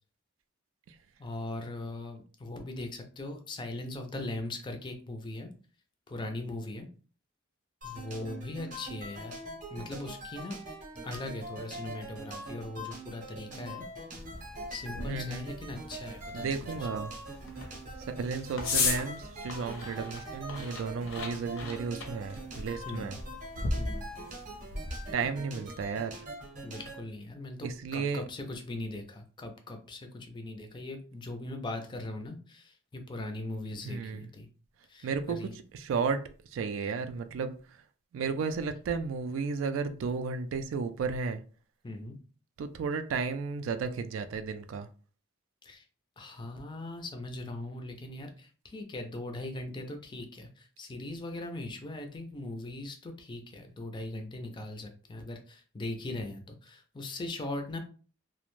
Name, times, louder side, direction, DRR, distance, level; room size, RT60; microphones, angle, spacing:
voice 1, 1.2-5.5 6.1-6.9 7.8-9.3 9.7-10.6 11.0-13.9 14.7-17.0 22.9-23.1 23.8-24.0 26.6-34.5 34.9-35.5 41.8-42.2 45.6-45.8 46.2-57.8, left 2 dB, 20° left, 0.4 m, -40 dB
sound 1, 7.8-27.0, right 1 dB, 40° right, 0.7 m, -43 dB
sound 2, 14.1-25.1, left 3 dB, 70° left, 0.6 m, -37 dB
voice 2, 15.1-15.5 16.3-17.1 18.1-23.2 25.1-26.2 27.6-28.2 33.8-34.3 35.0-35.4 35.7-36.2 36.5-37.8 38.1-41.4 42.6-44.9, right 5 dB, 70° right, 0.3 m, -33 dB
2.4 x 2.1 x 3.0 m
head